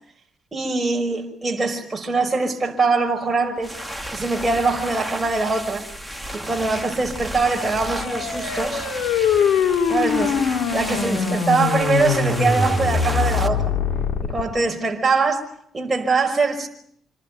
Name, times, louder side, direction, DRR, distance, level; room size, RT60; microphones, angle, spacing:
voice 1, 0.5-3.7 4.1-5.9 6.3-8.9 9.9-10.4 10.7-13.7 14.2-15.5 15.7-16.7, right 3 dB, 20° right, 5.4 m, -22 dB
sound 1, 3.6-13.5, equal, ahead, 2.6 m, -33 dB
sound 2, 7.5-14.4, left 6 dB, 75° left, 5.8 m, -22 dB
27.5 x 20.5 x 9.2 m
cardioid pair, 90°, 0 cm